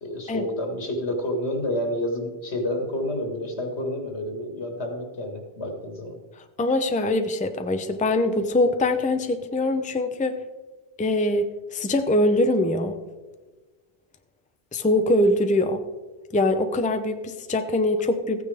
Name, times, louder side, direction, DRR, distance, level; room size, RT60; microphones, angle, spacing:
voice 1, 0.0-6.2, left 1 dB, 85° left, 2 dB, 2.1 m, -29 dB
voice 2, 6.6-10.4 11.0-13.0 14.7-15.8 16.3-18.4, left 1 dB, 10° left, 7 dB, 0.5 m, -23 dB
14.5 x 9.4 x 3.5 m, 1.3 s
omnidirectional pair, 1.1 m